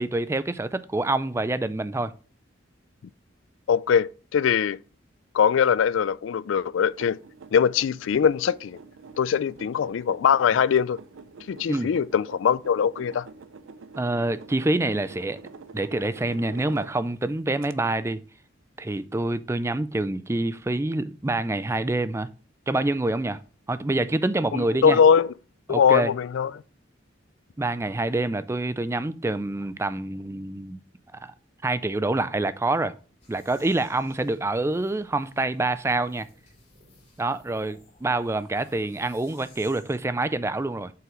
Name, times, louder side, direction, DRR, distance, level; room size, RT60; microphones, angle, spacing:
voice 1, 0.0-2.1 11.7-11.9 14.0-15.4 15.7-18.2 18.8-22.3 22.7-23.4 23.7-25.0 25.7-26.1 27.6-30.8 31.2-31.3 31.6-32.9 33.3-36.3 37.2-40.9, right 2 dB, 15° right, 0.4 m, -26 dB
voice 2, 3.7-4.8 5.3-7.2 7.5-8.8 9.2-11.0 11.5-13.3 24.5-25.3 25.7-26.5, left 7 dB, 80° left, 0.3 m, -21 dB
sound 1, 6.7-17.2 17.6-17.7, right 4 dB, 85° right, 0.5 m, -46 dB
sound 2, 33.2-40.0, left 3 dB, 35° left, 3.3 m, -56 dB
7.4 x 5.8 x 3.0 m
head